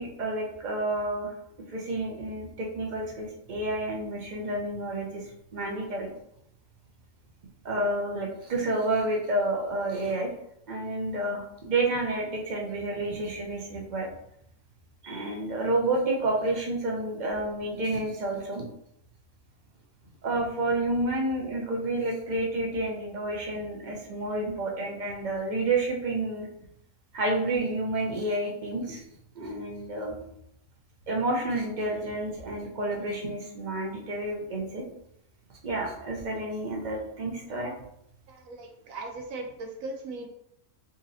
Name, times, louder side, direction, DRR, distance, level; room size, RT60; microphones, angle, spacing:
voice 1, 0.0-1.3 1.7-5.3 5.5-6.1 7.6-10.3 10.7-14.1 15.0-18.6 20.2-26.5 27.1-29.0 29.3-30.2 31.1-34.8 35.6-37.7, right 2 dB, 45° right, -1 dB, 0.5 m, -30 dB
voice 2, 38.3-40.3, right 2 dB, 70° right, 2 dB, 1.0 m, -38 dB
4.0 x 2.7 x 2.6 m, 0.75 s
omnidirectional pair, 1.6 m